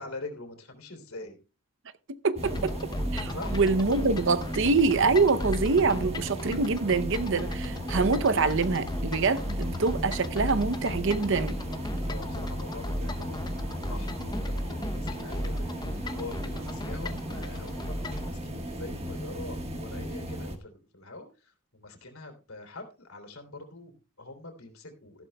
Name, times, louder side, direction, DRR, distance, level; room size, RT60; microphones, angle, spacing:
voice 1, 0.0-1.4 3.3-3.6 12.0-13.4 13.9-25.3, left 2 dB, 70° left, 3.1 m, -44 dB
voice 2, 2.2-2.7 3.1-11.6, right 4 dB, 55° right, 0.7 m, -25 dB
sound 1, 2.4-18.3, left 1 dB, 20° left, 0.7 m, -36 dB
sound 2, 2.4-20.6, equal, 30° right, 1.4 m, -36 dB
14.5 x 11.5 x 2.3 m
head